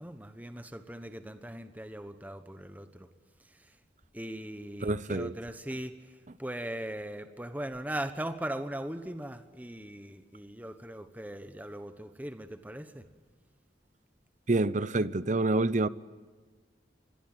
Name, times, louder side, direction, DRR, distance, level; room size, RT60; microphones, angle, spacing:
voice 1, 0.0-3.1 4.1-5.9 6.4-13.1, right 1 dB, 10° right, 1.2 m, -39 dB
voice 2, 4.8-5.3 14.5-15.9, right 2 dB, 45° right, 0.8 m, -27 dB
26.0 x 22.0 x 9.0 m
head